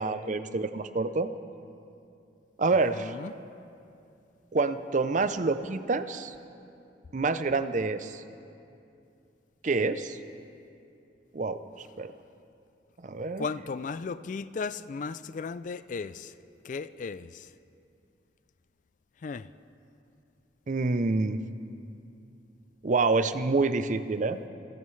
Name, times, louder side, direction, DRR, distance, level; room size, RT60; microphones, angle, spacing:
voice 1, 0.0-1.3 2.6-3.2 4.5-6.3 7.1-8.2 9.6-10.2 11.3-12.1 13.0-13.5 20.7-21.4 22.8-24.4, right 3 dB, 45° right, 11 dB, 0.5 m, -27 dB
voice 2, 3.0-3.3 13.4-16.3 16.6-17.5 19.2-19.5, left 5 dB, 45° left, 15 dB, 0.3 m, -35 dB
27.0 x 16.0 x 3.2 m, 2.6 s
head